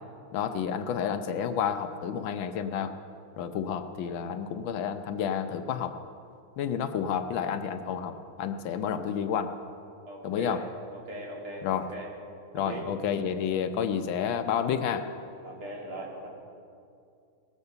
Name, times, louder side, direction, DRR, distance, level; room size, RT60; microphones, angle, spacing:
voice 1, 0.3-2.9 3.4-6.0 6.6-9.5 10.2-10.7 11.6-11.9 12.5-15.1, left 8 dB, 75° left, 9 dB, 1.4 m, -30 dB
voice 2, 10.0-12.1 12.6-12.9 15.4-16.3, right 1 dB, 80° right, -3 dB, 3.4 m, -40 dB
19.0 x 7.2 x 6.8 m, 2.4 s
omnidirectional pair, 2.3 m